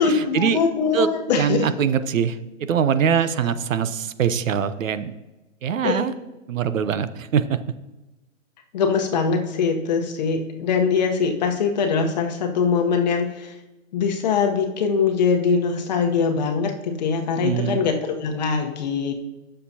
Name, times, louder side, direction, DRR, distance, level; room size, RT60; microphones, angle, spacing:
voice 1, 0.0-1.7 5.8-6.0 8.7-13.5 13.9-19.1, left 5 dB, 35° left, 4 dB, 1.0 m, -22 dB
voice 2, 1.4-5.1 5.6-6.1 6.5-7.6 17.4-17.8, right 8 dB, 80° right, 12 dB, 0.9 m, -22 dB
17.0 x 6.8 x 2.8 m, 1.0 s
hypercardioid pair, 165°, 39 cm